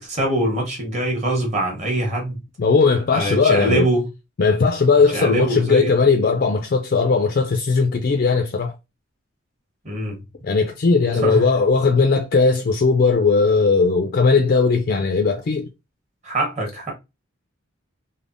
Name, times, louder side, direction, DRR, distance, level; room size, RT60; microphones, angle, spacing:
voice 1, 0.0-2.4 3.1-4.1 5.1-5.9 9.8-10.2 11.2-11.5 16.2-16.9, right 1 dB, 35° right, 1.1 m, -23 dB
voice 2, 2.6-3.9 4.4-8.7 10.4-15.7, left 4 dB, 45° left, 0.4 m, -18 dB
3.3 x 2.0 x 2.5 m
head